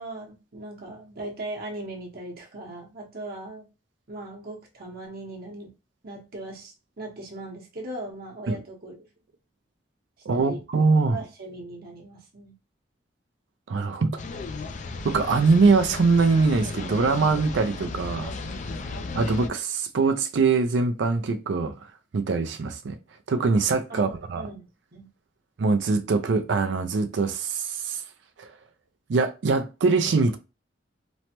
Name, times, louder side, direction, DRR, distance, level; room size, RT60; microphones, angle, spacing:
voice 1, 0.0-3.7 4.1-5.7 6.0-9.0 10.3-10.6 11.0-12.5 23.9-25.1, right 2 dB, 55° right, 0.9 m, -39 dB
voice 2, 10.3-11.2 13.7-14.2 15.0-18.3 19.1-21.7 22.1-23.0 23.3-24.4 25.6-28.0 28.4-28.5 29.1-30.4, right 4 dB, 75° right, 0.4 m, -23 dB
sound 1, 14.2-19.5, left 3 dB, 40° left, 0.3 m, -35 dB
3.1 x 2.1 x 2.8 m
head